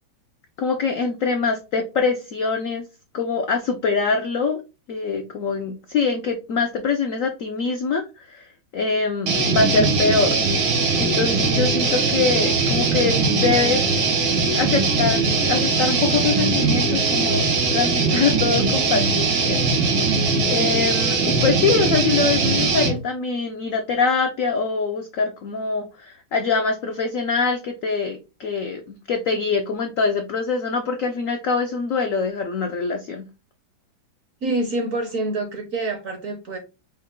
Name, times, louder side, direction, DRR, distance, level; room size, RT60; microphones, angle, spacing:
voice 1, 0.6-2.8 3.1-4.6 4.9-8.5 8.7-10.4 11.0-13.8 14.5-19.6 20.4-33.3, left 4 dB, 75° left, 0.7 m, -24 dB
sound 1, 9.3-23.0, right 4 dB, 80° right, 2.1 m, -20 dB
voice 2, 34.4-36.6, right 2 dB, 60° right, 0.9 m, -26 dB
5.2 x 2.2 x 3.6 m
omnidirectional pair, 2.1 m